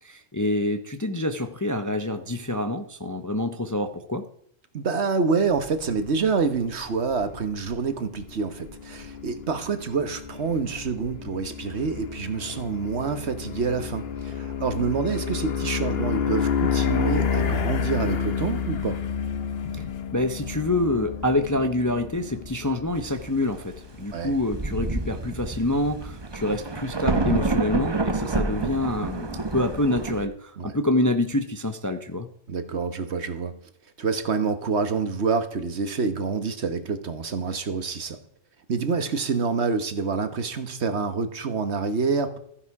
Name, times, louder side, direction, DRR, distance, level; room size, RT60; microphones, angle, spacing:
voice 1, 0.0-4.3 19.7-19.8 20.1-32.3, left 1 dB, 20° left, 8 dB, 0.7 m, -26 dB
voice 2, 4.7-19.0 24.1-24.3 30.6-30.7 32.5-33.5 34.0-38.2 38.7-42.4, right 5 dB, 60° right, 10 dB, 1.4 m, -27 dB
sound 1, 5.5-24.9, left 6 dB, 55° left, 1.1 m, -30 dB
Thunder, 24.1-24.2 24.5-30.3, right 3 dB, 25° right, 0.8 m, -28 dB
14.5 x 10.0 x 4.8 m, 0.69 s
omnidirectional pair, 1.3 m